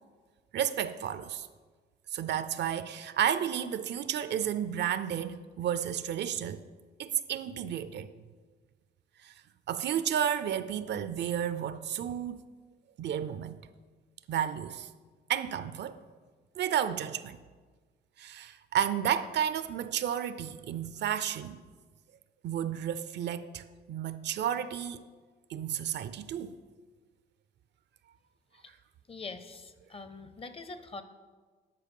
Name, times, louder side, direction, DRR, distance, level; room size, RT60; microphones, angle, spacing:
voice 1, 0.5-1.5 2.1-6.6 7.0-8.1 9.2-9.3 9.7-12.4 13.0-13.6 14.3-14.9 15.3-16.0 16.6-17.4 18.2-21.6 22.4-25.1 25.5-26.6, right 9 dB, 60° right, 0.4 m, -32 dB
voice 2, 29.1-31.0, left 4 dB, 30° left, 0.6 m, -44 dB
9.8 x 4.4 x 5.3 m
cardioid pair, 90°, 20 cm